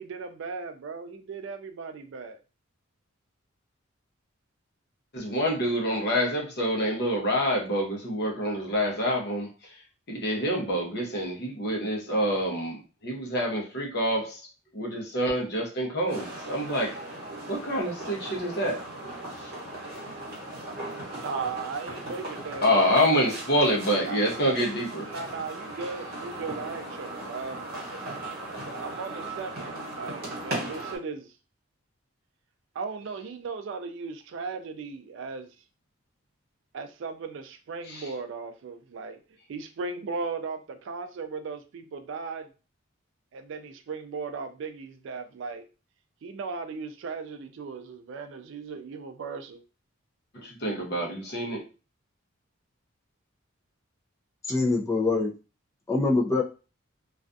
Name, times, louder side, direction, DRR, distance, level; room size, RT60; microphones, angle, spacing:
voice 1, 0.0-2.4 21.1-23.3 24.0-24.4 25.1-27.7 28.5-31.3 32.7-35.5 36.7-39.2 39.5-42.5 43.3-45.6 46.2-49.6, right 4 dB, 60° right, 0.3 m, -37 dB
voice 2, 5.1-9.8 10.1-14.5 14.7-17.0 17.5-18.8 19.4-19.5 22.6-25.1 37.9-38.1 50.3-51.7, equal, 50° left, 0.7 m, -27 dB
sound 1, 16.1-31.0, right 2 dB, 45° right, 1.0 m, -38 dB
voice 3, 54.4-55.3 55.9-56.4, left 3 dB, 15° left, 0.4 m, -24 dB
2.4 x 2.2 x 2.5 m
head